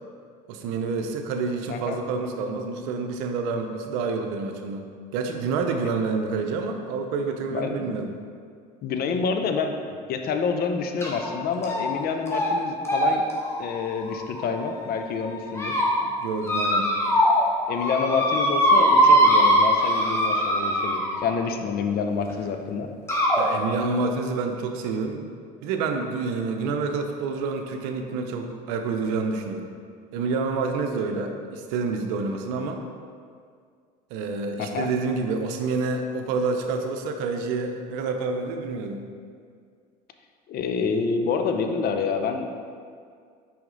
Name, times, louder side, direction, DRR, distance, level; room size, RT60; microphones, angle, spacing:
voice 1, 0.5-8.1 16.0-16.9 23.4-25.3 25.6-29.7 30.1-32.8 34.1-39.0, right 4 dB, 75° right, 5 dB, 0.7 m, -28 dB
voice 2, 7.5-8.1 8.8-13.3 13.6-15.8 17.7-22.9 34.6-34.9 40.5-42.5, left 5 dB, 50° left, 6 dB, 0.7 m, -27 dB
sound 1, 11.0-11.3 11.6-12.0 12.3-12.5 12.8-14.8 15.3-15.9 16.4-17.4 17.7-21.3 22.3-22.4 23.1-23.4, equal, 10° left, 1.6 m, -21 dB
6.0 x 5.0 x 3.9 m, 2.1 s
hypercardioid pair, 85°, 20 cm